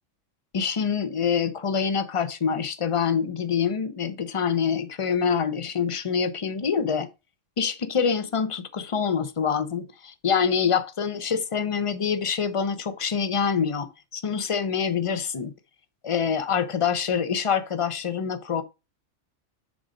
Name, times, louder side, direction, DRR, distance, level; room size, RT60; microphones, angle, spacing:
voice 1, 0.5-7.1 7.6-15.5 16.0-18.6, left 6 dB, 35° left, 0.6 m, -25 dB
7.0 x 3.9 x 5.1 m
omnidirectional pair, 1.3 m